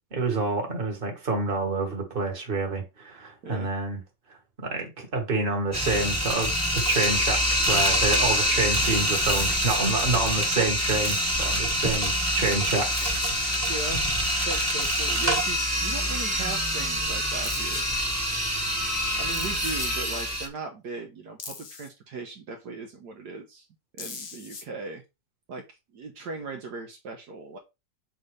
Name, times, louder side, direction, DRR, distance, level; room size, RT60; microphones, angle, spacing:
voice 1, 0.1-4.0 4.6-13.2 13.4-13.6 14.4-14.5, right 3 dB, 30° right, 1.8 m, -28 dB
sound 1, 5.7-20.5, equal, 10° right, 1.3 m, -26 dB
sound 2, 6.8-7.3 9.1-9.9 11.0-11.6 12.9-13.3 14.8-15.4 17.4-17.9 19.3-20.0 21.4-21.9 24.0-24.6, left 5 dB, 45° left, 1.0 m, -40 dB
voice 2, 13.7-14.1 14.4-17.9 19.2-23.7 23.9-25.0 25.5-25.6 25.9-27.6, right 3 dB, 65° right, 1.5 m, -38 dB
7.6 x 4.1 x 3.3 m
omnidirectional pair, 1.9 m